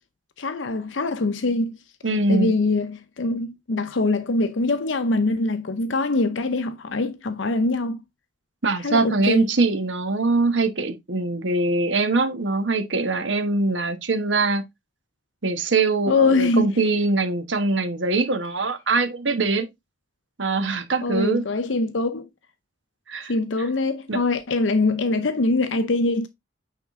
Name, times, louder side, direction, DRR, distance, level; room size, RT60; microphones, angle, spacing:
voice 1, 0.4-1.8 2.3-8.0 8.8-9.5 16.1-16.7 21.0-22.2 23.3-26.3, left 2 dB, 85° left, 0.7 m, -23 dB
voice 2, 2.0-2.5 8.6-14.6 15.4-19.7 20.4-21.5 23.1-23.3 23.6-23.7 24.1-24.2, right 3 dB, 80° right, 1.2 m, -23 dB
8.9 x 3.7 x 3.6 m
head